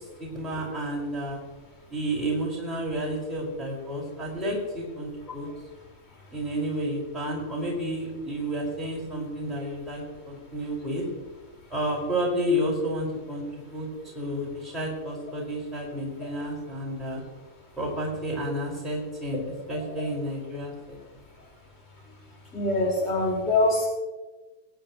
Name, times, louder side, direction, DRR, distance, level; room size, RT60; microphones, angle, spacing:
voice 1, 0.2-1.4 1.9-5.5 6.3-11.0 11.7-13.4 13.7-13.9 14.1-17.2 17.8-19.4 19.7-21.0, equal, 10° right, -4 dB, 5.2 m, -31 dB
voice 2, 22.5-23.9, left 2 dB, 15° left, -4 dB, 4.6 m, -23 dB
24.0 x 10.5 x 3.1 m, 1.2 s
figure-of-eight pair, 90°, 0 cm